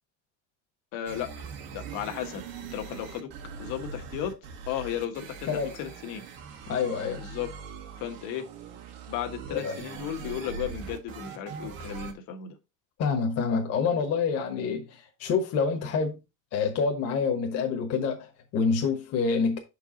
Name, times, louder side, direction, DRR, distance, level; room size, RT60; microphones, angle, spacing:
voice 1, 0.9-1.5 1.7-2.4 2.7-3.3 3.6-4.4 4.7-6.2 7.2-7.5 8.0-8.5 9.1-12.6, left 10 dB, 70° left, 1.3 m, -34 dB
sound 1, 1.1-12.1, right 6 dB, 80° right, 1.8 m, -41 dB
voice 2, 6.7-7.2 9.5-9.8 13.0-16.2 16.5-19.6, left 5 dB, 45° left, 1.2 m, -27 dB
6.6 x 4.7 x 3.8 m
cardioid pair, 170°, 35 cm